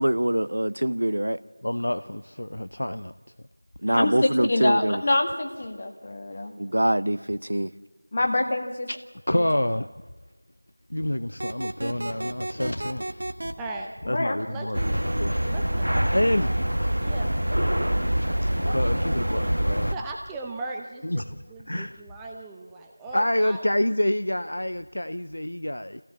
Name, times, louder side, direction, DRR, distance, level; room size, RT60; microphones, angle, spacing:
voice 1, 0.0-1.4 3.8-5.0 6.6-7.7, right 1 dB, 65° right, 0.7 m, -24 dB
voice 2, 1.6-3.1 8.9-9.0 9.3-9.8 10.9-13.5 14.1-14.8 15.2-15.4 16.1-16.5 18.4-19.9 21.0-21.4 21.7-22.0 23.1-26.0, left 1 dB, 65° left, 0.6 m, -27 dB
voice 3, 4.5-6.5 8.1-8.9 14.0-14.4, left 2 dB, 25° left, 1.7 m, -25 dB
sound 1, 11.4-13.5, right 1 dB, 40° right, 1.1 m, -32 dB
voice 4, 13.6-13.9 14.5-15.0 15.4-16.6 17.0-17.3 19.9-23.7, right 2 dB, 5° right, 0.6 m, -38 dB
sound 2, 14.7-20.0, equal, 80° right, 1.1 m, -25 dB
25.0 x 17.0 x 7.3 m
figure-of-eight pair, 175°, 0 cm